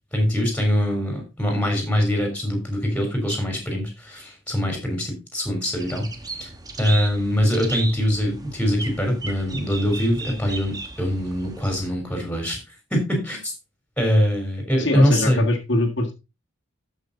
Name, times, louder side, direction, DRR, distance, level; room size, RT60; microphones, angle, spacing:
voice 1, 0.1-6.1 6.4-6.5 6.8-12.6 12.9-13.5 14.0-15.5, equal, 5° left, 3 dB, 3.6 m, -23 dB
sound 1, 5.8-11.9, right 3 dB, 20° right, 1.3 m, -35 dB
voice 2, 14.8-16.1, left 2 dB, 65° left, 1 dB, 1.9 m, -23 dB
12.5 x 5.7 x 3.9 m, 0.28 s
head